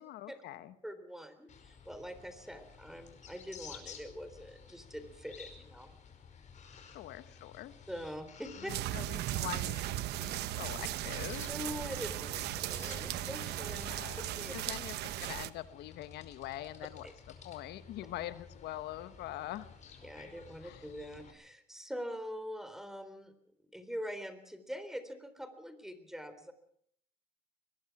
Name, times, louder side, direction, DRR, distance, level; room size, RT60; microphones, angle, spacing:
voice 1, 0.0-0.7 6.9-7.7 8.6-11.5 13.9-14.3 14.5-19.7 20.6-20.8, left 14 dB, 80° left, 13 dB, 1.3 m, -44 dB
voice 2, 0.8-5.9 7.9-8.7 11.5-13.9 14.2-14.5 17.0-17.1 20.0-23.3 23.7-26.5, equal, ahead, 10 dB, 3.8 m, -44 dB
sound 1, 1.5-21.3, left 7 dB, 45° left, 5.3 m, -53 dB
sound 2, 8.7-15.5, right 15 dB, 80° right, 1.0 m, -37 dB
22.5 x 21.0 x 6.1 m, 0.66 s
cardioid pair, 110°, 17 cm